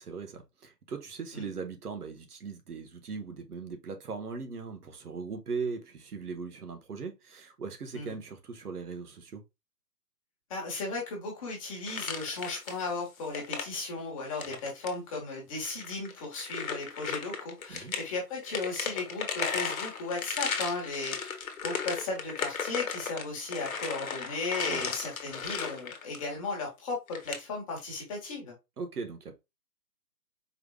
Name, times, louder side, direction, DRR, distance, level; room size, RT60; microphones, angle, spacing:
voice 1, 0.0-9.4 17.7-18.0 24.7-24.9 28.8-29.4, right 5 dB, 65° right, 1.4 m, -39 dB
voice 2, 10.5-21.3 21.6-28.5, left 3 dB, 20° left, 1.5 m, -36 dB
sound 1, 11.9-12.9 13.2-13.7 14.3-14.9 15.6-18.0 18.4-26.3 27.1-27.4, left 6 dB, 55° left, 1.3 m, -35 dB
4.7 x 3.5 x 2.2 m
hypercardioid pair, 160°, 49 cm